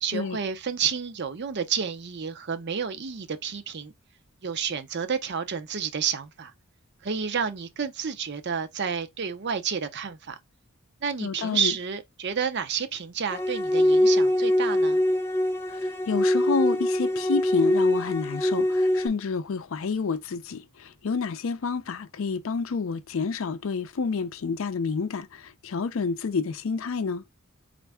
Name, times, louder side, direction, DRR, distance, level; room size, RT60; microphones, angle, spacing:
voice 1, 0.0-3.9 4.4-6.5 7.0-10.4 11.0-15.0, right 7 dB, 50° right, 0.6 m, -30 dB
voice 2, 11.2-11.7 16.1-27.2, left 5 dB, 65° left, 0.4 m, -29 dB
sound 1, 13.3-19.1, left 1 dB, 10° left, 0.5 m, -23 dB
4.3 x 2.5 x 3.3 m
head